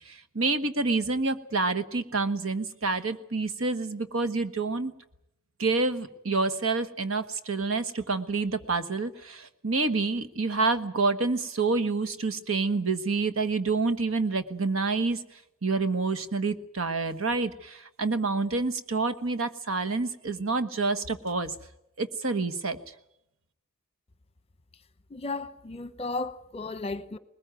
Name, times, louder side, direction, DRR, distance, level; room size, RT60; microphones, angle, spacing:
voice 1, 0.1-4.9 5.6-15.2 15.6-21.5 22.0-22.8, right 3 dB, 80° right, 1.4 m, -28 dB
voice 2, 25.1-27.2, left 3 dB, 30° left, 1.0 m, -34 dB
20.5 x 20.0 x 9.1 m
head